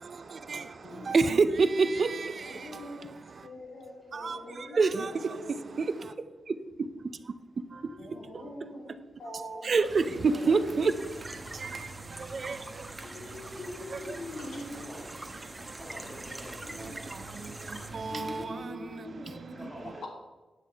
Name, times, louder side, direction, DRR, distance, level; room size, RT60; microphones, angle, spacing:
voice 1, 0.0-3.5 4.1-6.1 6.5-7.3 7.7-8.7 9.3-11.0 11.3-13.0 13.9-14.2 15.7-15.8 16.8-19.7, right 4 dB, 50° right, 0.6 m, -30 dB
voice 2, 0.8-1.1 2.4-3.1 3.4-4.8 5.1-5.8 7.9-9.8 10.0-10.6 13.1-15.0 16.6-17.1 17.8-17.9 18.1-19.7, left 2 dB, 80° left, 3.2 m, -44 dB
sound 1, 9.8-18.5, right 3 dB, 30° right, 1.2 m, -45 dB
sound 2, 10.8-17.9, right 1 dB, 15° right, 0.9 m, -46 dB
voice 3, 14.7-15.2 15.7-17.2 19.3-20.1, equal, ahead, 2.5 m, -47 dB
9.8 x 8.7 x 4.6 m
wide cardioid pair, 105°, 0 cm